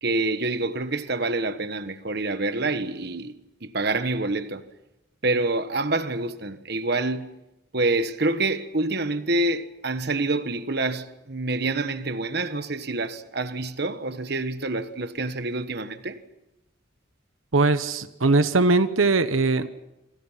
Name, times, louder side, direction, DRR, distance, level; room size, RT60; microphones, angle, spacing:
voice 1, 0.0-3.3 3.6-4.6 5.2-7.4 7.7-16.2, right 2 dB, 50° right, 1.3 m, -27 dB
voice 2, 17.5-19.7, right 3 dB, 85° right, 1.0 m, -20 dB
27.5 x 25.5 x 5.8 m
head